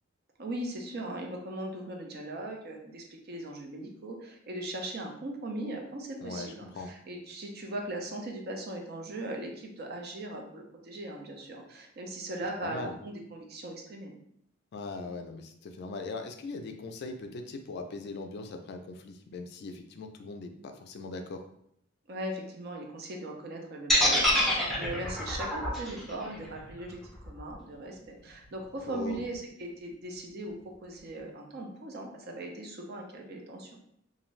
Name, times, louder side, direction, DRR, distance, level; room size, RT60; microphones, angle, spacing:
voice 1, 0.4-14.1 22.1-30.5 30.8-33.8, right 1 dB, 55° right, 1 dB, 0.5 m, -39 dB
voice 2, 6.2-6.9 12.6-12.9 14.7-21.4 28.9-29.2, left 3 dB, 55° left, 6 dB, 0.3 m, -40 dB
sound 1, 23.9-27.9, equal, ahead, 0.5 m, -27 dB
2.6 x 2.4 x 3.1 m, 0.70 s
head